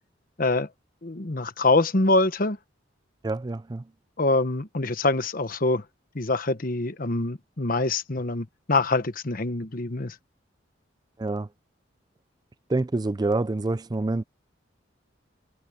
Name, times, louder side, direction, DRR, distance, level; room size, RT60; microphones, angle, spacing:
voice 1, 0.4-0.7 1.0-2.6 4.2-5.8 6.1-10.1, left 2 dB, 45° left, 1.1 m, -24 dB
voice 2, 3.2-3.8 11.2-11.5 12.7-14.2, right 2 dB, 20° right, 0.4 m, -27 dB
head